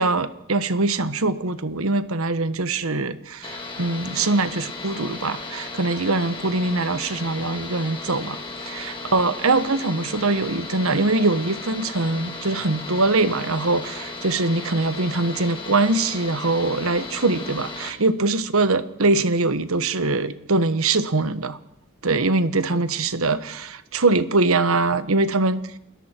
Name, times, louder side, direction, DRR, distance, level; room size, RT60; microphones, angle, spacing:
voice 1, 0.0-21.6 22.0-25.6, right 3 dB, 70° right, 12 dB, 1.3 m, -23 dB
sound 1, 3.4-17.9, left 3 dB, 25° left, 3.5 m, -35 dB
29.0 x 21.0 x 4.6 m, 0.76 s
head